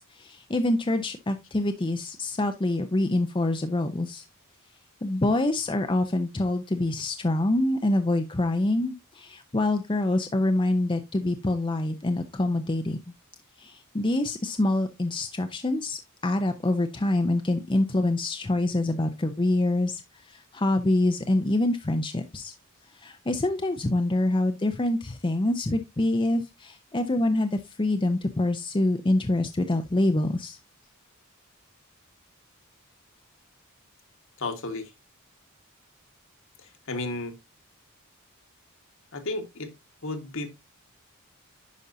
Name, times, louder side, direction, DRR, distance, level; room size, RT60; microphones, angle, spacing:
voice 1, 0.0-4.2 5.0-13.0 13.6-20.0 20.3-22.5 23.0-30.6, left 2 dB, 20° left, 0.6 m, -26 dB
voice 2, 34.4-34.9 36.9-37.3 39.1-39.7 40.0-40.5, left 2 dB, 65° left, 1.6 m, -32 dB
10.0 x 5.4 x 2.7 m
head